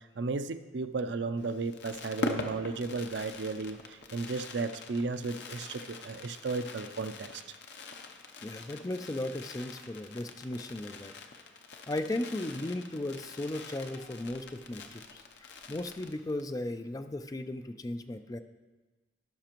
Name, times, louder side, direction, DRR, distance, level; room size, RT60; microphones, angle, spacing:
voice 1, 0.0-7.4, right 4 dB, 75° right, 10 dB, 0.5 m, -34 dB
Fireworks, 1.4-16.6 16.8-16.9 17.1-17.4, left 3 dB, 65° left, 0.7 m, -43 dB
voice 2, 8.4-11.1 11.9-18.4, left 1 dB, 20° left, 9 dB, 0.4 m, -36 dB
16.5 x 5.9 x 3.0 m, 1.3 s
head